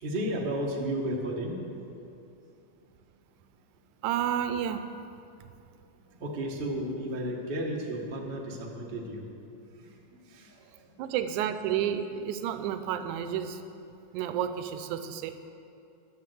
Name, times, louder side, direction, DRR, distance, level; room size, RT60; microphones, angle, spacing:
voice 1, 0.0-1.6 6.2-9.2 9.8-9.9 10.3-10.7 11.0-11.1, right 1 dB, 60° right, -2 dB, 0.5 m, -33 dB
voice 2, 4.0-4.9 11.0-13.6 14.1-15.3, right 9 dB, 85° right, 10 dB, 2.1 m, -30 dB
11.5 x 7.4 x 7.8 m, 2.7 s
omnidirectional pair, 3.5 m